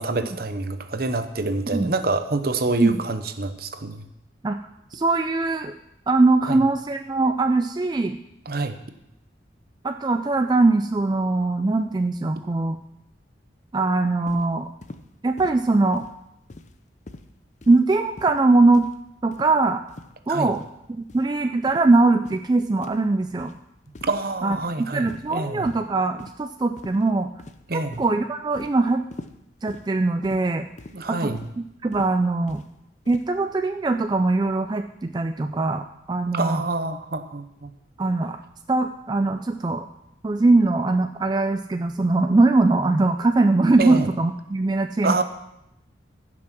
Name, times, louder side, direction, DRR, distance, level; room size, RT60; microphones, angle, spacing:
voice 1, 0.0-4.1 6.5-6.6 8.5-8.8 12.4-12.5 20.3-20.5 24.0-25.7 27.7-28.0 30.9-31.5 36.3-37.7 43.8-44.1 45.0-45.2, right 3 dB, 55° right, 10 dB, 0.8 m, -27 dB
voice 2, 4.9-5.7 6.1-8.2 9.8-12.8 13.7-14.7 15.2-16.0 17.7-18.9 19.2-19.8 20.3-20.6 20.9-23.5 24.4-27.3 27.7-29.0 29.6-30.6 31.1-32.6 33.1-36.6 38.0-38.4 38.7-39.9 40.2-45.2, right 3 dB, 25° right, 7 dB, 0.3 m, -21 dB
sound 1, 14.3-14.5 14.8-15.0 15.4-15.6 15.9-16.2 16.5-16.8 17.1-17.3 17.6-17.8 18.2-18.4 18.7-19.0 19.3-19.5 19.9-20.1 20.5-20.7 21.1-21.3 21.7-21.9 22.2-22.4 22.8-23.0 23.4-23.6 23.9-24.2 24.5-24.7 25.1-25.3 25.6-25.8 26.2-26.3 26.8-27.0 27.4-27.7 27.9-28.2 28.5-28.7 29.1-29.4 29.7-29.9 30.2-30.4 30.8-31.0 31.3-31.5 31.9-32.1 32.5-32.7 33.0-33.3, left 2 dB, 40° left, 0.6 m, -42 dB
15.0 x 6.1 x 6.0 m, 0.85 s
head